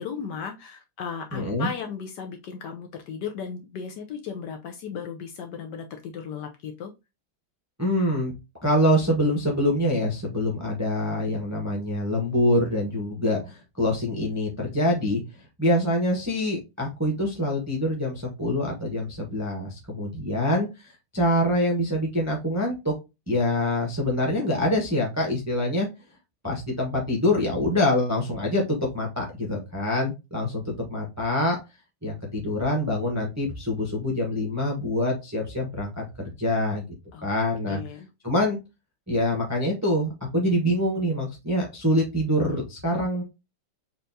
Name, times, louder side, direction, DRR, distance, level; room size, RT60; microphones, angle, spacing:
voice 1, 0.0-6.9 37.1-37.3 37.6-38.1, left 6 dB, 70° left, 4 dB, 1.1 m, -36 dB
voice 2, 1.3-1.7 7.8-8.3 8.6-15.2 15.6-22.9 23.3-25.9 26.4-31.6 32.0-36.0 36.4-36.9 37.2-37.8 38.2-38.6 39.1-43.2, left 1 dB, 15° right, -1 dB, 0.6 m, -25 dB
4.3 x 3.4 x 2.6 m, 0.24 s
omnidirectional pair, 2.2 m